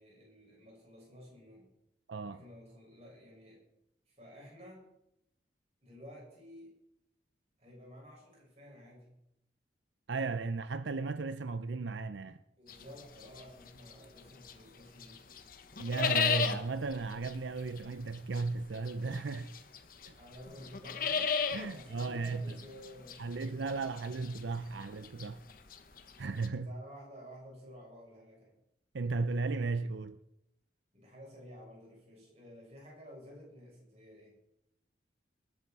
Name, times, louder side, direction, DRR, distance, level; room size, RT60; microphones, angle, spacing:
voice 1, 0.0-1.7 2.3-3.6 4.1-4.9 5.8-6.7 7.6-9.2 12.6-15.3 20.1-21.3 21.6-23.7 26.5-28.6 30.9-34.4, equal, 35° right, 7.4 m, -53 dB
voice 2, 2.1-2.4 10.1-12.4 15.8-19.5 20.0-20.1 21.5-22.6 23.2-25.4 26.2-26.7 28.9-30.2, right 3 dB, 85° right, 0.6 m, -35 dB
sound 1, 12.7-14.7 15.0-26.5, left 6 dB, 50° left, 1.2 m, -36 dB
20.0 x 11.5 x 4.7 m
head